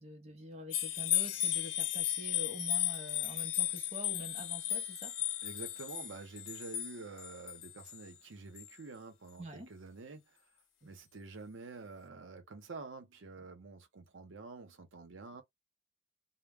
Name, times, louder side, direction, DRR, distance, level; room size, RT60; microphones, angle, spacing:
voice 1, 0.0-5.1 9.4-9.7 10.8-10.9, equal, 35° right, 0.6 m, -46 dB
sound 1, 0.7-8.0 8.6-8.7, left 13 dB, 90° left, 0.5 m, -35 dB
voice 2, 5.4-10.3 10.8-15.4, right 3 dB, 75° right, 0.7 m, -48 dB
2.1 x 2.0 x 3.4 m
head